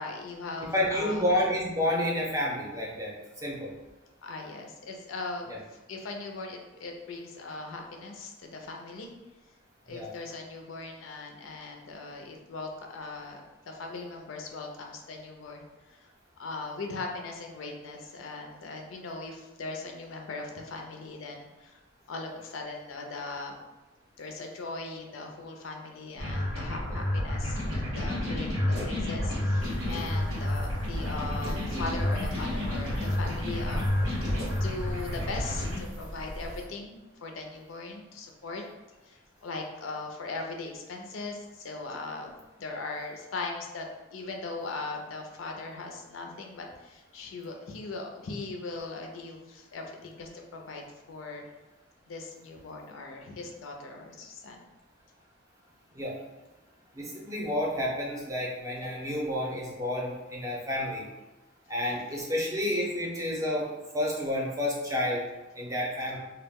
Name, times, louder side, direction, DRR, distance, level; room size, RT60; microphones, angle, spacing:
voice 1, 0.0-1.2 4.2-9.1 9.9-16.1 16.4-21.8 22.1-23.5 24.2-34.3 34.5-38.6 39.0-42.3 42.6-43.9 44.1-51.4 52.1-54.6, left 3 dB, 75° left, 2 dB, 0.4 m, -39 dB
voice 2, 0.7-3.7 5.5-5.6 9.9-10.1 55.9-56.2 56.9-61.1 61.7-63.7 63.9-65.2 65.5-66.2, left 1 dB, 15° right, -4 dB, 0.6 m, -30 dB
sound 1, 26.2-35.8, left 1 dB, 85° right, 1.1 m, -30 dB
sound 2, 29.6-36.7, equal, 65° right, 0.5 m, -40 dB
2.2 x 2.1 x 3.4 m, 1.1 s
head